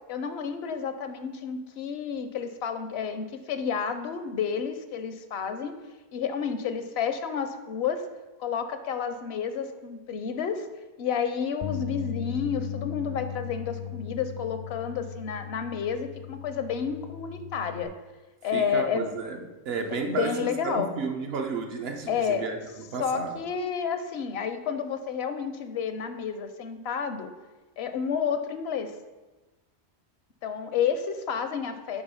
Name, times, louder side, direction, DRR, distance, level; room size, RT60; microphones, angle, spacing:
voice 1, 0.1-5.8 6.1-8.0 8.4-10.7 11.0-17.9 18.4-19.1 20.0-20.9 22.1-22.5 23.0-27.3 27.8-28.9 30.4-32.0, left 6 dB, 75° left, 9 dB, 0.8 m, -30 dB
Bass guitar, 11.6-17.9, left 9 dB, 55° left, 0.3 m, -37 dB
voice 2, 18.5-19.4 19.6-22.6 22.9-23.3, right 4 dB, 70° right, 4 dB, 1.0 m, -32 dB
8.0 x 3.6 x 5.5 m, 1.2 s
omnidirectional pair, 1.1 m